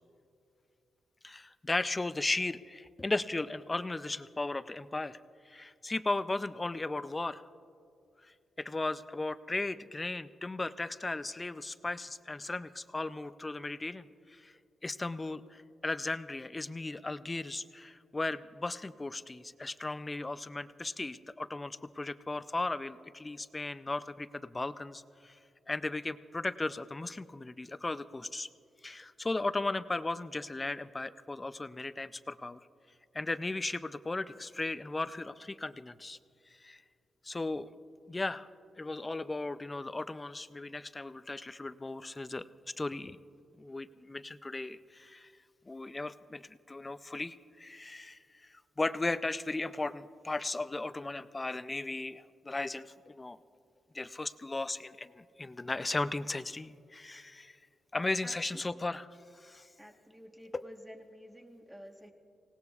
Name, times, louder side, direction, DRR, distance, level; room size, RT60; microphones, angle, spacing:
voice 1, 1.2-5.2 5.5-7.4 8.6-14.5 14.8-25.4 25.7-28.5 28.8-32.6 33.1-36.2 36.6-36.8 37.2-37.7 38.1-38.5 38.8-42.4 42.8-43.2 43.6-45.3 45.7-53.4 53.9-57.6 57.9-59.1 59.3-59.7 60.5-60.6, left 2 dB, 15° left, 13 dB, 0.3 m, -36 dB
voice 2, 59.8-62.1, equal, 5° right, 3 dB, 1.2 m, -50 dB
25.5 x 18.5 x 2.4 m, 2.5 s
wide cardioid pair, 160°, 0 cm